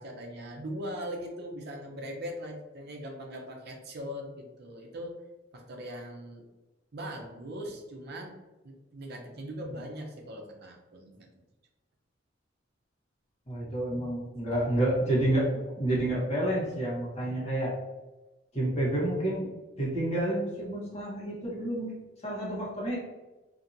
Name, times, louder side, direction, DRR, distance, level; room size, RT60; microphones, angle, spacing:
voice 1, 0.0-5.2 5.5-6.4 6.9-8.4 8.6-11.3 13.9-14.2 17.2-17.6, equal, 55° right, 2 dB, 0.6 m, -40 dB
voice 2, 13.5-17.7 18.5-19.4 19.8-21.9 22.2-23.0, right 1 dB, 35° left, -6 dB, 1.1 m, -29 dB
2.8 x 2.6 x 2.5 m, 1.1 s
head